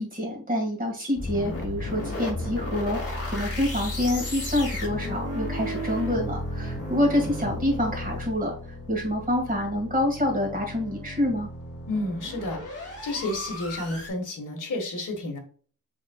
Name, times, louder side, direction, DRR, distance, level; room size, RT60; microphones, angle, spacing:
voice 1, 0.0-8.5 8.9-11.5, left 1 dB, 20° right, 0 dB, 2.0 m, -27 dB
sound 1, 1.2-14.1, left 1 dB, 35° left, 2.0 m, -34 dB
voice 2, 11.9-15.4, left 2 dB, 55° left, 1 dB, 1.7 m, -31 dB
6.0 x 3.7 x 2.4 m, 0.42 s
wide cardioid pair, 125°, 38 cm